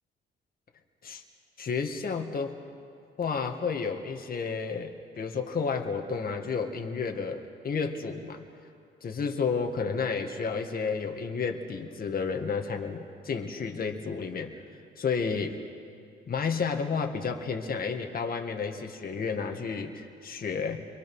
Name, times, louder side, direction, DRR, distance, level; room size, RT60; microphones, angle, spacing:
voice 1, 1.6-2.6 3.2-8.4 9.0-14.5 15.0-15.6 16.3-20.9, left 5 dB, 50° left, 3 dB, 2.0 m, -31 dB
30.0 x 23.5 x 6.3 m, 2.4 s
cardioid pair, 90°, 20 cm